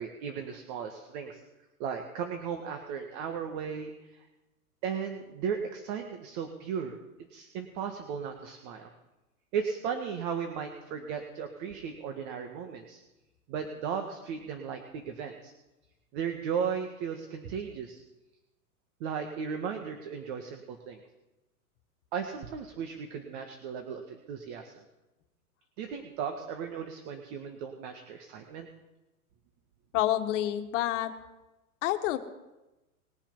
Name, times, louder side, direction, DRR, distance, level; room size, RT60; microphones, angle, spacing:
voice 1, 0.0-1.4 1.8-4.3 4.8-7.0 7.3-8.9 9.5-13.0 13.5-15.5 16.1-18.0 19.0-21.0 22.1-24.8 25.8-28.7, right 7 dB, 45° right, 5 dB, 1.8 m, -36 dB
voice 2, 29.9-31.1 31.8-32.2, left 13 dB, 55° left, 7 dB, 1.7 m, -28 dB
21.0 x 7.4 x 5.5 m, 1.0 s
hypercardioid pair, 115°, 44 cm